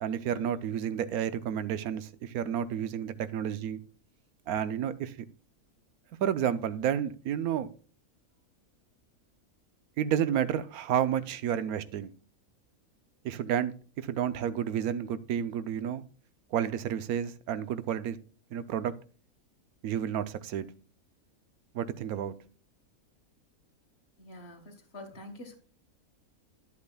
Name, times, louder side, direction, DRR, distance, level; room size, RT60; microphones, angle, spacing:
voice 1, 0.0-3.8 4.5-5.2 6.2-7.7 10.0-12.1 13.2-16.0 16.5-18.2 18.5-18.9 19.8-20.7 21.7-22.3, right 9 dB, 85° right, 14 dB, 1.1 m, -31 dB
voice 2, 24.2-25.6, left 1 dB, 45° left, 5 dB, 1.4 m, -46 dB
10.5 x 8.3 x 2.2 m, 0.40 s
omnidirectional pair, 1.5 m